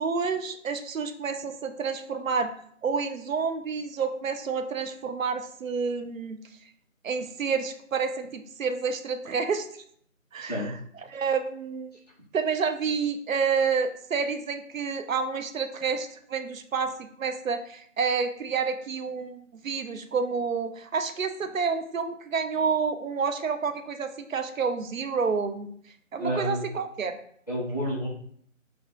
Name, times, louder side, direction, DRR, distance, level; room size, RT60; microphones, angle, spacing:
voice 1, 0.0-2.5 2.8-6.4 7.0-9.7 10.3-10.7 11.1-12.0 12.3-25.7 26.1-27.2, right 5 dB, 70° right, 8 dB, 0.6 m, -29 dB
voice 2, 10.4-10.7 26.2-26.7 27.5-28.1, equal, 30° left, -5 dB, 0.7 m, -29 dB
3.2 x 2.4 x 3.8 m, 0.63 s
figure-of-eight pair, 175°, 41 cm